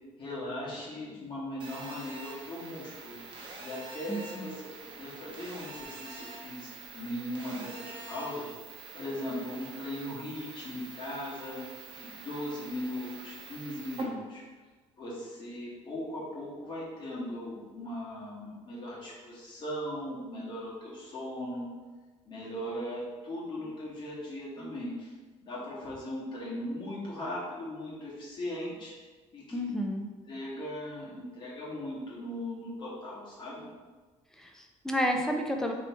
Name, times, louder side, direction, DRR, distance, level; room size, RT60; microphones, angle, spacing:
voice 1, 0.2-3.2 3.6-4.5 4.8-11.6 11.9-14.4 15.0-21.7 22.2-25.1 25.4-28.9 29.3-29.6 30.2-33.6, left 1 dB, 40° left, -6 dB, 1.3 m, -38 dB
Telephone, 1.6-14.0, right 3 dB, 45° right, 0.7 m, -46 dB
voice 2, 4.1-4.5 29.5-30.1 34.4-35.7, equal, 5° left, 2 dB, 0.4 m, -31 dB
3.1 x 2.9 x 4.3 m, 1.3 s
cardioid pair, 155°, 12 cm